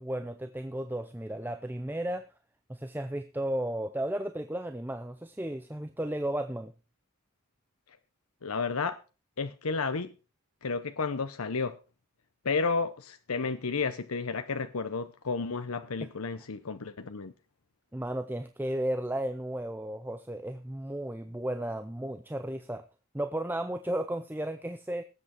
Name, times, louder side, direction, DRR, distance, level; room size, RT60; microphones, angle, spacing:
voice 1, 0.0-2.2 2.7-6.7 17.9-22.8 23.1-25.0, right 1 dB, 10° right, 0.6 m, -34 dB
voice 2, 8.4-9.0 9.4-10.1 10.6-11.8 12.4-17.3, left 4 dB, 85° left, 0.8 m, -32 dB
19.0 x 8.1 x 4.5 m
head